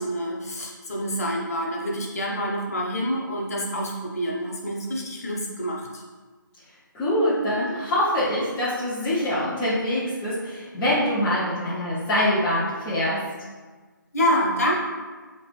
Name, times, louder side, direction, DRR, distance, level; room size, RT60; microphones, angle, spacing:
voice 1, 0.0-6.0 14.1-14.8, equal, 45° left, -2 dB, 0.9 m, -27 dB
voice 2, 6.9-13.2, left 1 dB, 5° left, -11 dB, 0.3 m, -24 dB
4.7 x 3.0 x 3.2 m, 1.4 s
figure-of-eight pair, 150°, 11 cm